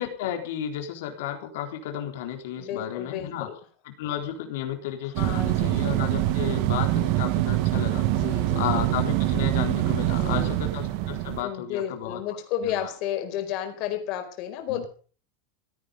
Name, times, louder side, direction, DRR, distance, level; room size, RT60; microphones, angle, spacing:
voice 1, 0.0-3.5 3.8-12.9 14.7-14.8, left 10 dB, 75° left, 4 dB, 4.0 m, -33 dB
voice 2, 2.6-3.5 5.0-5.9 8.0-9.1 10.0-10.6 11.4-14.9, left 10 dB, 45° left, 6 dB, 4.6 m, -33 dB
sound 1, 5.1-11.4, right 15 dB, 55° right, 1.6 m, -24 dB
17.0 x 14.0 x 5.4 m, 0.41 s
supercardioid pair, 155°, 0 cm